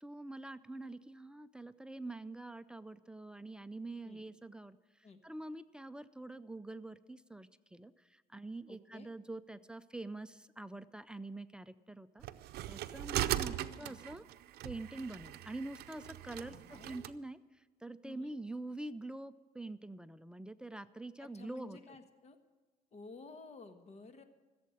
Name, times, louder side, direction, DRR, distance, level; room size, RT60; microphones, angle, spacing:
voice 1, 0.0-12.2 12.7-14.2 14.6-21.8, right 2 dB, 5° right, 12 dB, 0.5 m, -46 dB
voice 2, 8.7-9.1 12.9-14.0 16.5-17.1 18.0-18.3 21.2-22.4 22.9-24.2, left 3 dB, 40° left, 8 dB, 1.5 m, -53 dB
sound 1, 12.2-17.1, right 14 dB, 70° right, 0.6 m, -39 dB
15.5 x 7.5 x 9.7 m, 1.3 s
cardioid pair, 110°, 17 cm